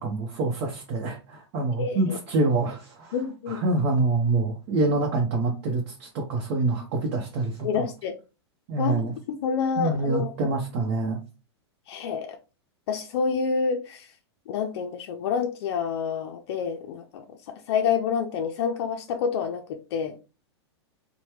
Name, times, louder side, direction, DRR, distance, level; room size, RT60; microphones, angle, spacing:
voice 1, 0.0-3.2 3.5-7.9 8.7-9.1 9.8-11.2, right 3 dB, 50° right, 0.8 m, -26 dB
voice 2, 1.8-2.2 3.1-3.6 7.6-8.2 8.8-9.0 9.3-10.5 11.9-12.4 12.9-14.1 14.5-20.2, left 6 dB, 65° left, 0.4 m, -28 dB
3.2 x 2.2 x 2.9 m
hypercardioid pair, 115°, 14 cm